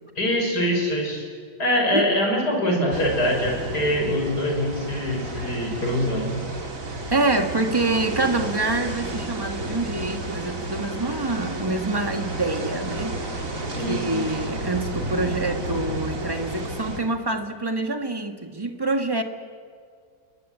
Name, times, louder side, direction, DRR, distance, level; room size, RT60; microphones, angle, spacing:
voice 1, 0.1-1.3 1.6-6.4 13.7-14.2, equal, 65° left, 1 dB, 6.8 m, -24 dB
sound 1, 2.9-17.0, right 2 dB, 50° right, 3.3 m, -32 dB
voice 2, 7.1-13.5 13.9-19.2, right 2 dB, 15° right, 6 dB, 1.7 m, -26 dB
30.0 x 21.5 x 8.1 m, 2.2 s
omnidirectional pair, 1.9 m